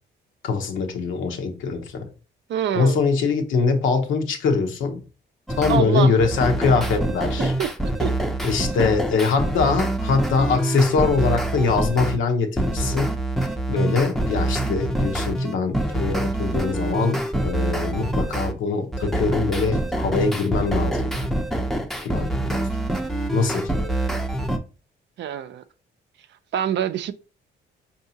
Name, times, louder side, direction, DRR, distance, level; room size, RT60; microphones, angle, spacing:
voice 1, 0.4-2.1 2.7-5.0 5.6-7.5 8.4-13.1 13.7-21.1 22.0-22.7 23.3-23.7, left 4 dB, 80° left, 0.9 m, -23 dB
voice 2, 2.5-3.0 5.7-6.1 7.4-7.7 8.0-8.1 25.2-25.6 26.5-27.1, right 10 dB, 65° right, 0.5 m, -25 dB
sound 1, 5.5-5.8 6.2-12.2 12.6-18.5 18.9-24.6, right 1 dB, ahead, 0.5 m, -25 dB
4.6 x 2.7 x 2.7 m
cardioid pair, 90°, 20 cm